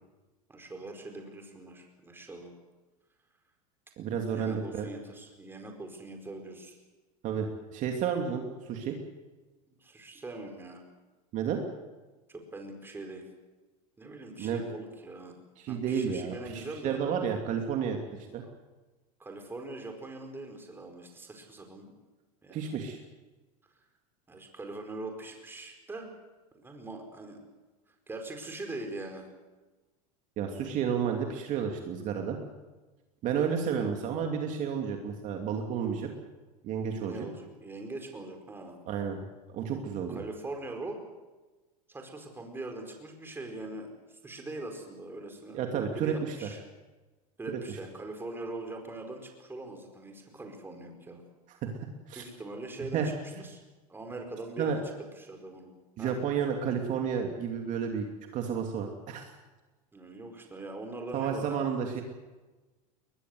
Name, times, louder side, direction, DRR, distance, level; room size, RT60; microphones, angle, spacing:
voice 1, 0.5-2.5 4.3-6.8 9.7-10.8 12.3-13.2 14.0-15.4 15.7-17.0 19.2-21.9 22.4-22.7 24.3-26.1 26.5-27.4 27.9-29.2 33.7-33.9 37.1-38.8 40.1-41.0 41.9-45.6 45.9-46.6 47.4-51.2 52.1-53.0 53.4-53.6 53.9-54.8 55.1-55.7 56.0-56.2 59.9-61.5, right 2 dB, 10° right, 4 dB, 4.6 m, -42 dB
voice 2, 4.0-4.9 7.2-9.0 11.3-11.6 14.4-14.6 15.6-18.4 22.5-23.0 30.4-32.4 33.2-36.1 36.6-37.3 38.9-39.2 39.5-40.2 45.5-46.5 47.5-47.8 51.5-51.7 52.1-52.2 52.8-53.1 54.6-54.8 56.0-58.1 58.3-59.3 61.1-62.0, right 7 dB, 40° right, 3 dB, 2.8 m, -31 dB
21.5 x 21.5 x 7.9 m, 1.2 s
supercardioid pair, 135°, 19 cm